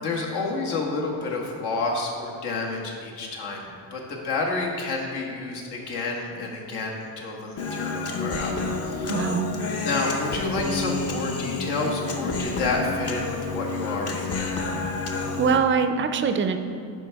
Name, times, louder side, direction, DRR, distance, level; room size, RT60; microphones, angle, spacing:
voice 1, 0.0-8.5 8.8-9.3 9.8-14.6, left 3 dB, 75° left, -1 dB, 1.5 m, -29 dB
Human voice, 7.6-15.6, left 4 dB, 35° left, 0.7 m, -29 dB
voice 2, 9.1-9.5 15.4-16.6, right 6 dB, 30° right, 8 dB, 0.4 m, -22 dB
11.0 x 4.7 x 3.4 m, 2.4 s
cardioid pair, 125°, 40 cm